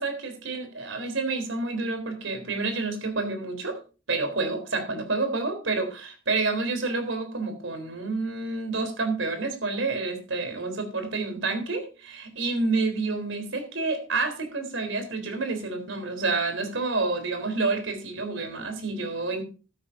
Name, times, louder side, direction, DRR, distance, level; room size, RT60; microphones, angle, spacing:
voice 1, 0.0-3.8 4.1-19.4, right 3 dB, 90° right, 7 dB, 3.7 m, -29 dB
13.5 x 12.5 x 2.6 m, 0.33 s
head